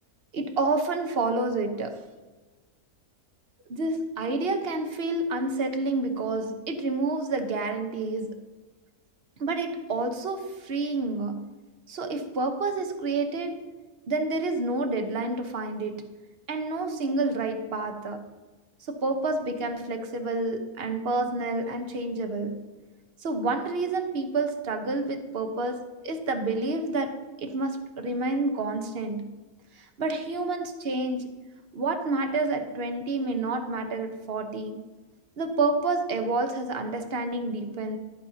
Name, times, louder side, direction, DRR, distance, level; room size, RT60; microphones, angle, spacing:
voice 1, 0.3-2.0 3.7-8.4 9.4-11.5 11.9-13.6 14.1-16.0 16.5-18.2 18.9-22.6 23.2-29.3 29.8-31.3 31.7-34.8 35.4-38.0, right 3 dB, 45° right, 6 dB, 1.1 m, -29 dB
12.5 x 8.7 x 2.8 m, 1.3 s
omnidirectional pair, 1.6 m